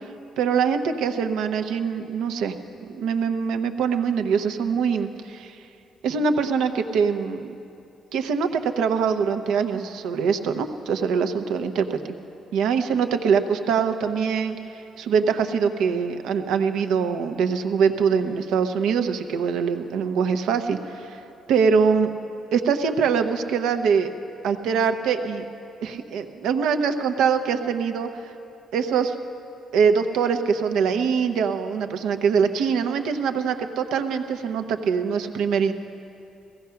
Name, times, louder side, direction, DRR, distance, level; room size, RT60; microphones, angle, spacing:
voice 1, 0.4-5.5 6.0-7.5 8.1-12.2 12.5-14.6 15.0-21.2 21.5-22.1 22.5-24.1 24.4-25.4 25.8-28.3 28.7-29.1 29.7-35.7, right 6 dB, 85° right, 7 dB, 0.8 m, -23 dB
16.0 x 15.0 x 5.7 m, 2.7 s
cardioid pair, 90°, 0 cm